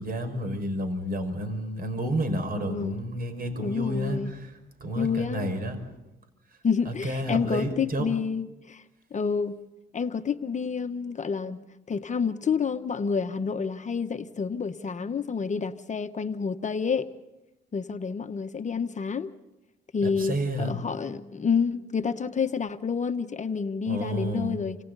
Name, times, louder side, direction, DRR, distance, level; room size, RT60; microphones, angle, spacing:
voice 1, 0.0-4.5 4.8-5.9 6.9-8.1 20.0-20.8 23.9-24.6, equal, 50° right, 5.7 m, -30 dB
voice 2, 2.6-3.0 3.6-4.3 4.9-5.5 6.6-8.8 9.1-9.5 9.9-17.1 17.7-19.3 19.9-24.8, left 5 dB, 35° left, 1.1 m, -29 dB
29.0 x 26.5 x 4.1 m
cardioid pair, 90°, 20 cm